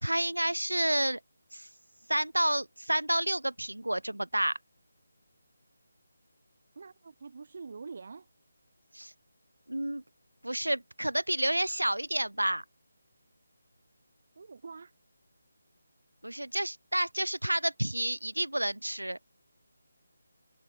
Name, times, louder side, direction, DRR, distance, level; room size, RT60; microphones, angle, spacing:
voice 1, 0.0-1.2 1.5-1.7 2.1-4.6 8.9-9.1 9.7-10.0 10.4-12.6 16.2-19.2, right 1 dB, 80° right, 0.4 m, -30 dB
voice 2, 6.8-8.3 14.4-14.9, right 4 dB, 45° right, 0.7 m, -45 dB
figure-of-eight pair, 155°, 0 cm